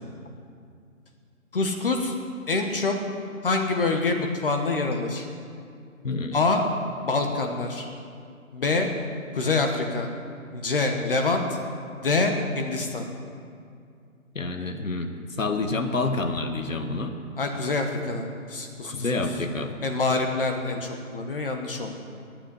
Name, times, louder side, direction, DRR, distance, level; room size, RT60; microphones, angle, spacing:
voice 1, 1.5-2.1 2.5-3.0 3.4-5.3 6.3-6.6 7.0-7.9 8.5-8.9 9.3-10.1 10.5-11.6 12.0-13.0 17.4-19.1 19.8-22.0, left 3 dB, 40° left, 3 dB, 1.1 m, -26 dB
voice 2, 6.0-6.4 14.3-15.1 15.4-17.2 18.8-19.8, left 3 dB, 65° left, 6 dB, 1.4 m, -28 dB
10.5 x 8.9 x 9.7 m, 2.3 s
figure-of-eight pair, 145°, 42 cm